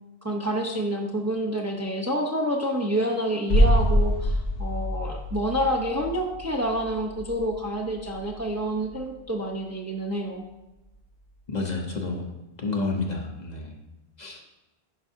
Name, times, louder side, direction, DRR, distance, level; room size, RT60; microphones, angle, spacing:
voice 1, 0.2-10.4, equal, 20° right, 0 dB, 0.6 m, -28 dB
sound 1, 3.5-9.2 9.5-9.6, equal, 80° left, 1.2 m, -26 dB
voice 2, 11.5-12.2 12.6-13.7 14.2-14.4, left 3 dB, 45° left, 1 dB, 0.9 m, -29 dB
10.0 x 5.4 x 2.7 m, 1.0 s
omnidirectional pair, 1.1 m